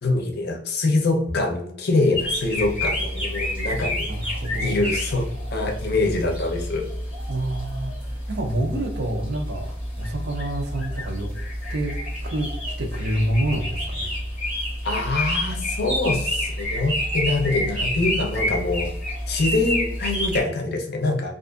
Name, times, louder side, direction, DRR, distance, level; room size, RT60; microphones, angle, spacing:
voice 1, 0.0-4.1 4.6-5.3 5.5-6.9 14.8-18.9 19.3-21.3, left 2 dB, 60° left, 3 dB, 0.6 m, -24 dB
sound 1, 2.1-20.4, left 1 dB, 5° right, 1.1 m, -28 dB
voice 2, 4.1-4.8 7.3-9.7 10.0-11.3 11.7-12.5 12.8-14.1, right 1 dB, 60° right, 3 dB, 0.6 m, -28 dB
2.5 x 2.4 x 2.4 m, 0.68 s
head